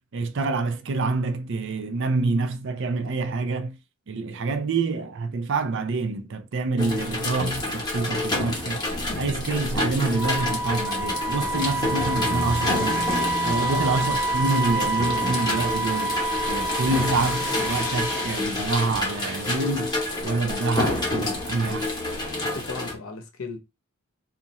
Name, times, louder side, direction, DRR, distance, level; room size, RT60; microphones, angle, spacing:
voice 1, 0.1-3.8 4.1-13.1 13.4-16.2 16.5-21.9, right 3 dB, 55° right, 0.5 m, -27 dB
sound 1, 6.8-22.9, left 2 dB, 20° left, 0.8 m, -28 dB
Wind instrument woodwind instrument, 10.1-18.4, right 2 dB, 5° right, 0.5 m, -28 dB
voice 2, 13.5-13.8 22.4-23.6, left 3 dB, 65° left, 0.7 m, -36 dB
2.9 x 2.5 x 4.0 m
head